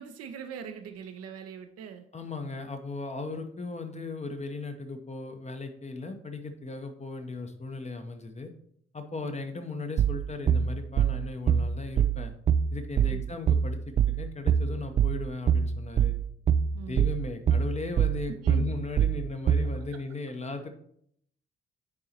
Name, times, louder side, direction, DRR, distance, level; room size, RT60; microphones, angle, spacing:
voice 1, 0.0-2.1 9.2-9.4 13.0-13.2 16.7-17.1 18.4-18.6 19.7-20.0, right 7 dB, 50° right, 7 dB, 0.7 m, -42 dB
voice 2, 2.1-8.5 8.9-12.3 12.7-16.1 16.9-20.7, left 3 dB, 20° left, 6 dB, 0.9 m, -37 dB
sound 1, 10.0-19.8, right 8 dB, 25° right, 0.3 m, -24 dB
9.7 x 4.7 x 2.9 m, 0.69 s
figure-of-eight pair, 40°, 31 cm